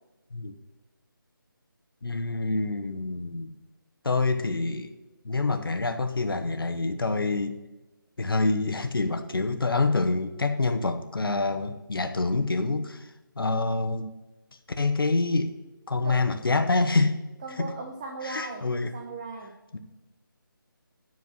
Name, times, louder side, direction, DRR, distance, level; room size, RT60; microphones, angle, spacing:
voice 1, 2.0-3.5 4.0-4.9 5.2-7.6 8.2-13.1 13.4-14.1 14.8-15.5 15.9-17.1 17.6-17.7 18.2-18.9 19.7-19.8, left 3 dB, 75° left, 7 dB, 1.1 m, -26 dB
voice 2, 16.0-16.4 17.4-18.7 18.9-19.5, right 3 dB, 20° right, 2 dB, 0.6 m, -37 dB
9.6 x 4.7 x 6.0 m, 1.1 s
figure-of-eight pair, 165°, 12 cm